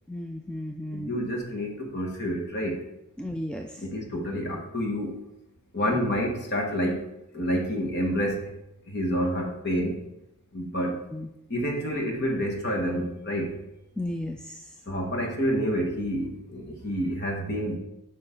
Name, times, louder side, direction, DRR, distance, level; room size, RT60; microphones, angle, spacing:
voice 1, 0.1-1.1 3.2-3.8 5.9-6.0 11.1-11.3 14.0-14.7, left 1 dB, 5° left, 2 dB, 0.3 m, -34 dB
voice 2, 0.9-2.8 3.8-5.1 5.7-7.0 7.3-8.5 8.9-10.0 10.5-11.0 11.5-13.5 14.9-17.8, equal, 45° left, 0 dB, 1.6 m, -28 dB
8.9 x 5.4 x 3.9 m, 0.85 s
head